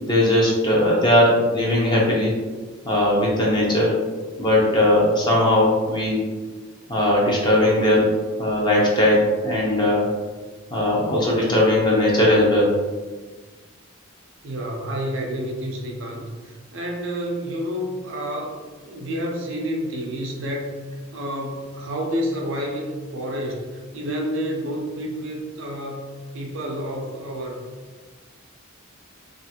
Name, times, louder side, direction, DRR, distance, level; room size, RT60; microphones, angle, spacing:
voice 1, 0.0-2.3 2.9-3.9 4.4-6.2 6.9-8.1 8.4-10.1 10.7-12.7, left 1 dB, 20° left, -4 dB, 0.6 m, -19 dB
voice 2, 14.4-18.6 18.8-20.8 21.1-27.6, equal, 65° right, 0 dB, 0.5 m, -29 dB
2.5 x 2.4 x 2.8 m, 1.4 s
head